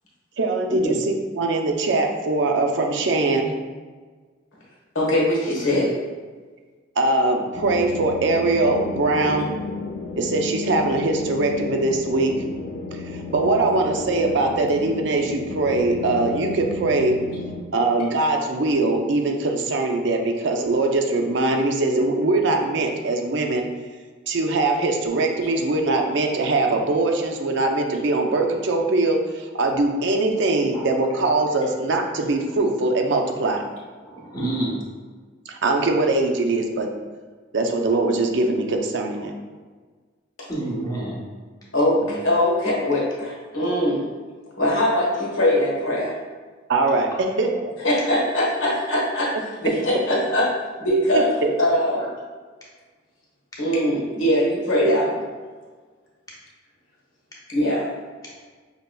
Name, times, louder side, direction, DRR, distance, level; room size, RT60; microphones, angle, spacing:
voice 1, 0.4-3.5 7.0-9.5 10.2-12.4 12.9-13.0 13.3-17.2 17.7-23.7 24.3-33.6 35.5-36.9 37.5-39.3 42.0-42.1 46.7-47.7 51.1-51.5, right 2 dB, 60° right, 2 dB, 0.5 m, -22 dB
voice 2, 4.9-5.9 40.4-40.5 41.7-44.0 44.6-46.1 47.8-49.3 49.6-50.5 50.8-51.3 51.6-52.1 53.6-55.2 57.5-57.8, left 1 dB, 90° left, -4 dB, 1.2 m, -21 dB
sound 1, 7.5-17.6, left 3 dB, 40° left, 0.3 m, -33 dB
voice 3, 34.0-34.8 40.5-41.2 58.2-58.4, right 2 dB, 20° left, -5 dB, 0.8 m, -28 dB
5.4 x 2.9 x 2.3 m, 1.4 s
head